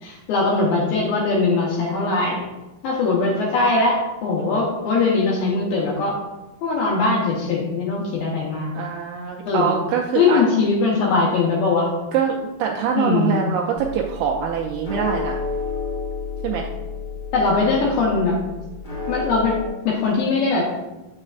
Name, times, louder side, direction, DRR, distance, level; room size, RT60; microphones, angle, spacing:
voice 1, 0.0-2.4 2.8-6.2 6.6-8.7 9.5-9.7 10.2-11.9 13.0-13.4 17.3-18.4 19.1-19.6 19.9-20.7, left 3 dB, 75° left, -4 dB, 2.6 m, -21 dB
voice 2, 8.7-10.4 12.1-15.4 16.4-16.7, right 7 dB, 80° right, 0 dB, 2.3 m, -24 dB
sound 1, 13.8-19.7, left 4 dB, 40° left, 1.6 m, -31 dB
7.5 x 6.2 x 2.4 m, 1.0 s
omnidirectional pair, 4.4 m